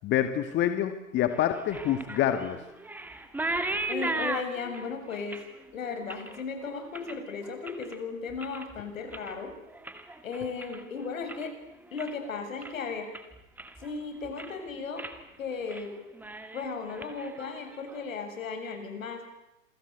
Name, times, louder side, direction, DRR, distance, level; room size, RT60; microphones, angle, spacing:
voice 1, 0.0-2.6, left 11 dB, 25° left, 8 dB, 2.0 m, -27 dB
sound 1, 1.3-8.0 8.3-8.8 9.1-11.5 11.8-12.3 12.6-12.7 13.1-13.9 14.2-14.6 15.0-15.2 15.5-15.9 16.1-18.0, right 2 dB, 5° right, 2.0 m, -37 dB
voice 2, 3.9-5.4 5.7-9.5 10.2-11.5 11.9-13.1 13.8-15.0 15.4-15.9 16.5-19.2, left 5 dB, 70° left, 6 dB, 7.5 m, -35 dB
27.5 x 23.5 x 8.2 m, 0.93 s
hypercardioid pair, 125°, 41 cm